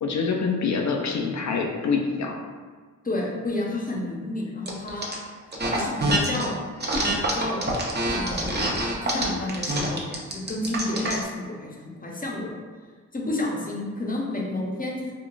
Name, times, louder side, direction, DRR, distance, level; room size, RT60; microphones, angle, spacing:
voice 1, 0.0-2.4, left 5 dB, 55° left, 2 dB, 0.5 m, -25 dB
voice 2, 3.0-5.1 5.7-6.6 7.2-7.7 8.1-8.7 9.0-12.5 13.1-15.1, left 2 dB, 25° left, -2 dB, 0.8 m, -30 dB
sound 1, 4.7-5.1 5.5-6.5 6.8-11.2, right 1 dB, 30° right, 0.7 m, -26 dB
3.8 x 2.3 x 2.4 m, 1.5 s
cardioid pair, 50°, 34 cm